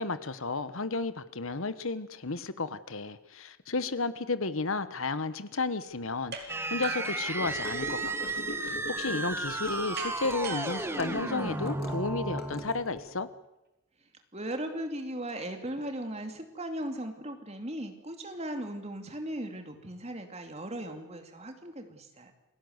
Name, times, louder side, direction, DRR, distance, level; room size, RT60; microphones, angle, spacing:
voice 1, 0.0-8.1 8.6-13.3, left 3 dB, 70° left, 14 dB, 1.2 m, -33 dB
sound 1, 6.3-6.5 6.8-8.0 10.0-11.9, right 5 dB, 50° right, 3.5 m, -41 dB
sound 2, 6.5-13.0, right 2 dB, 10° right, 1.4 m, -34 dB
Gurgling / Car passing by / Sink (filling or washing), 7.4-13.1, left 1 dB, 45° left, 3.5 m, -42 dB
voice 2, 14.3-22.3, right 1 dB, 30° right, 6 dB, 2.7 m, -37 dB
28.0 x 17.5 x 8.1 m, 0.96 s
head